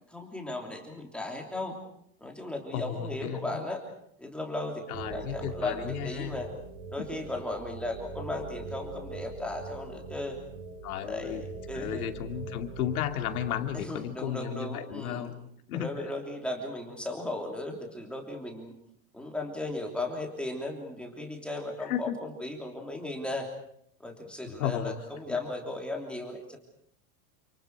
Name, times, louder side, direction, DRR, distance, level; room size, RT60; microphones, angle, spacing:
voice 1, 0.1-1.8 2.2-3.8 4.2-6.5 6.9-10.4 11.0-11.4 11.7-12.1 13.7-15.3 15.7-18.7 19.1-23.5 24.0-26.6, left 2 dB, ahead, 0 dB, 3.0 m, -36 dB
voice 2, 2.7-3.6 4.9-6.4 7.0-7.1 10.8-11.4 11.7-15.3 15.7-15.9 21.8-22.2 24.6-25.0 25.3-25.4, left 10 dB, 75° left, 5 dB, 2.7 m, -34 dB
sound 1, 4.9-13.9, right 3 dB, 40° right, 4.7 m, -42 dB
29.5 x 27.0 x 4.8 m, 0.69 s
supercardioid pair, 175°, 44 cm